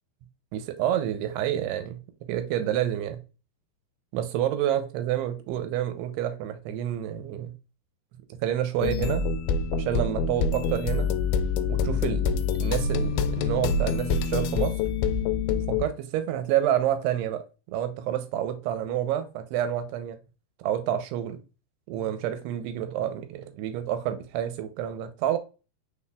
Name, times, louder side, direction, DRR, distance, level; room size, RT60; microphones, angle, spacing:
voice 1, 0.5-2.0 2.3-3.2 4.1-7.6 8.4-9.3 9.7-11.1 11.7-14.8 15.7-17.4 17.7-20.2 20.6-21.4 21.9-25.4, right 11 dB, 85° right, 2.8 m, -28 dB
sound 1, 8.8-15.9, left 5 dB, 80° left, 2.2 m, -26 dB
5.5 x 4.2 x 2.3 m
omnidirectional pair, 4.6 m